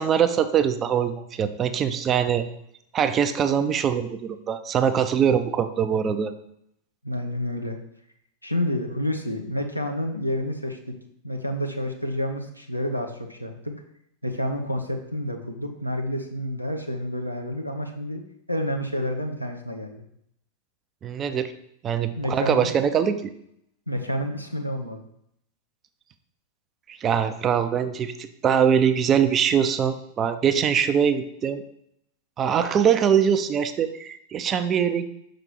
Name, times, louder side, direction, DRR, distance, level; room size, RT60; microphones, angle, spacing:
voice 1, 0.0-2.5 2.9-6.3 21.0-21.5 21.8-23.3 26.9-31.6 32.4-35.0, right 8 dB, 25° right, 10 dB, 0.5 m, -23 dB
voice 2, 7.0-7.8 8.4-10.9 11.2-13.7 14.2-18.2 18.5-20.0 22.2-22.7 23.9-25.0, left 1 dB, 90° left, 3 dB, 0.8 m, -29 dB
5.9 x 5.1 x 4.5 m, 0.74 s
figure-of-eight pair, 90°, 0 cm